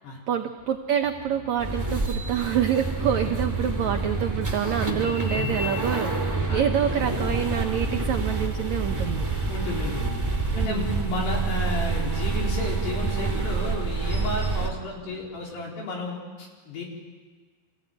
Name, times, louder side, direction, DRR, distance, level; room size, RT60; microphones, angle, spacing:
voice 1, 0.3-9.5 10.5-10.9, right 9 dB, 80° right, 5 dB, 1.6 m, -27 dB
sound 1, 0.6-5.9 6.7-15.6, equal, 60° left, 8.1 m, -47 dB
sound 2, 1.6-14.7, right 3 dB, 5° right, 1.4 m, -27 dB
voice 2, 9.5-10.2 10.6-16.8, left 2 dB, 80° left, -2 dB, 6.2 m, -32 dB
26.5 x 16.0 x 9.2 m, 1.5 s
omnidirectional pair, 4.6 m